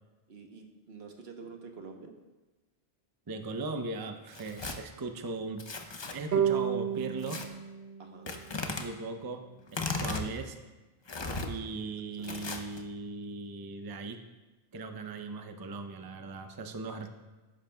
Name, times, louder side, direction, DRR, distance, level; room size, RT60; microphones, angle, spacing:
voice 1, 0.3-2.2 8.0-8.4 11.3-12.6, right 4 dB, 70° right, 4 dB, 1.2 m, -49 dB
voice 2, 3.3-5.6 6.1-7.4 8.8-9.4 9.7-10.6 11.5-14.2 14.7-17.1, right 3 dB, 30° right, 7 dB, 0.5 m, -38 dB
Tearing, 4.3-4.8 5.6-6.2 7.2-7.5 8.3-8.9 9.7-10.3 11.1-11.5 12.2-12.8, left 3 dB, 30° left, 0.6 m, -36 dB
sound 1, 6.3-9.6, right 8 dB, 50° right, 1.0 m, -33 dB
12.0 x 10.5 x 2.2 m, 1.2 s
omnidirectional pair, 1.1 m